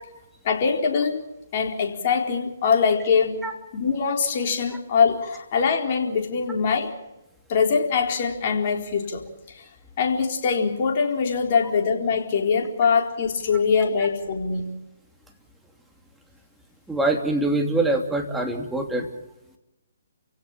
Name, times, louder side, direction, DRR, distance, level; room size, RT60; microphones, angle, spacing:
voice 1, 0.4-1.3 1.5-3.4 3.7-6.9 7.5-9.3 9.5-9.6 10.0-14.7, left 5 dB, 40° left, 2 dB, 4.2 m, -23 dB
voice 2, 16.9-19.1, right 2 dB, 5° right, 2 dB, 2.8 m, -24 dB
29.5 x 17.0 x 7.4 m, 0.96 s
figure-of-eight pair, 140°, 0 cm